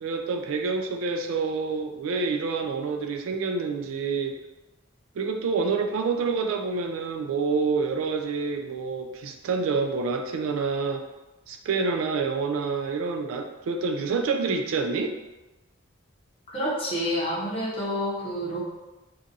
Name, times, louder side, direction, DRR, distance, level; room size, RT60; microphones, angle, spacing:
voice 1, 0.0-4.3 5.2-11.1 11.5-15.1, right 4 dB, 80° right, 4 dB, 0.3 m, -27 dB
voice 2, 16.5-18.6, equal, 25° left, -5 dB, 0.7 m, -28 dB
2.6 x 2.3 x 3.9 m, 1.1 s
head